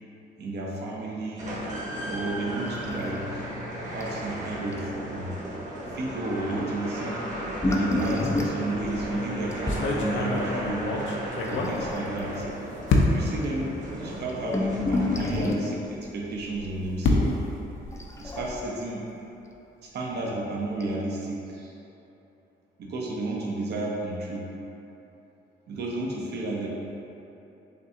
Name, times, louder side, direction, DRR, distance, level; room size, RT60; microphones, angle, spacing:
voice 1, 0.4-3.4 3.9-5.4 5.9-7.2 7.6-10.9 11.5-12.4 13.1-17.3 18.2-19.0 19.8-21.7 22.8-24.5 25.7-26.7, right 2 dB, 55° right, -3 dB, 0.7 m, -32 dB
sound 1, 1.4-15.6, right 1 dB, 40° right, 1.1 m, -35 dB
sound 2, 2.8-3.4 3.6-3.7 4.0-4.2 4.7-4.8 7.3-9.9 11.5-12.2 13.0-13.1 13.3-13.4 14.0-15.8 17.9-18.8 20.1-20.2 20.8-20.9, left 2 dB, 15° left, 0.4 m, -29 dB
sound 3, 8.8-9.1 9.7-12.4 12.9-13.4 14.2-14.3 14.6-14.7 16.3-18.7, left 3 dB, 75° left, 0.6 m, -27 dB
6.5 x 2.4 x 2.8 m, 3.0 s
cardioid pair, 90°, 20 cm